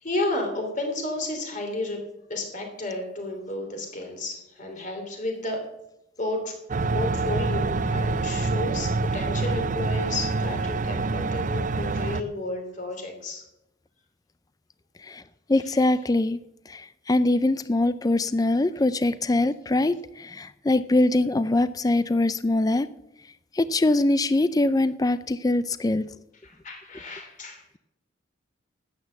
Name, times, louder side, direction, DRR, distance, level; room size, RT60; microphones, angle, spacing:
voice 1, 0.0-2.0 2.3-5.6 6.2-6.5 6.9-13.4 26.4-27.6, left 2 dB, 40° left, 3 dB, 3.1 m, -32 dB
sound 1, 6.7-12.2, right 3 dB, 40° right, 0.5 m, -26 dB
voice 2, 15.5-16.4 16.7-22.9 23.5-26.1, left 2 dB, 20° left, 15 dB, 0.4 m, -23 dB
12.5 x 8.9 x 7.1 m, 0.86 s
head